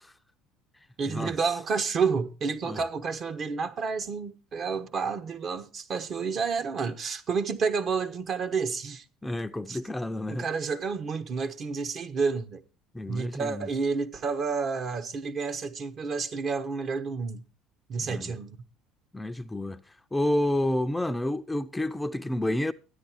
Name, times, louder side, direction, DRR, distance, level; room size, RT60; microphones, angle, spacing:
voice 1, 1.0-9.0 9.7-9.8 10.3-12.6 13.1-17.4 17.9-18.6, right 5 dB, 45° right, 1.2 m, -30 dB
voice 2, 9.2-10.5 12.9-13.7 18.0-18.3 19.1-19.8 20.1-22.7, left 1 dB, 10° left, 0.6 m, -29 dB
13.0 x 9.8 x 4.5 m
hypercardioid pair, 70°, 0 cm